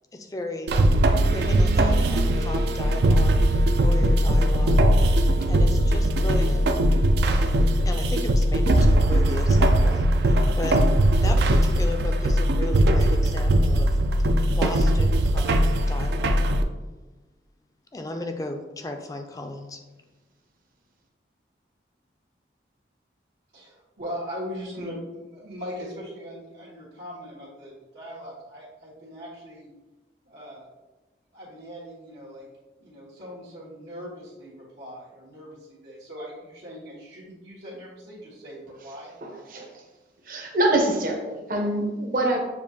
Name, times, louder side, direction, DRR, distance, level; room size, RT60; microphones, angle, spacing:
voice 1, 0.1-0.8 1.2-3.4 3.7-4.9 5.5-6.6 7.3-10.8 11.2-16.5 17.9-19.8, left 1 dB, 20° left, 5 dB, 0.3 m, -35 dB
sound 1, 0.7-16.6, right 1 dB, 70° right, 0.3 m, -20 dB
voice 2, 23.5-29.7 30.3-30.7 31.3-32.5 32.8-39.8, equal, 90° right, -9 dB, 1.4 m, -40 dB
voice 3, 39.2-39.6 40.3-42.4, right 1 dB, 50° right, 1 dB, 0.8 m, -25 dB
6.9 x 2.5 x 2.8 m, 1.1 s
head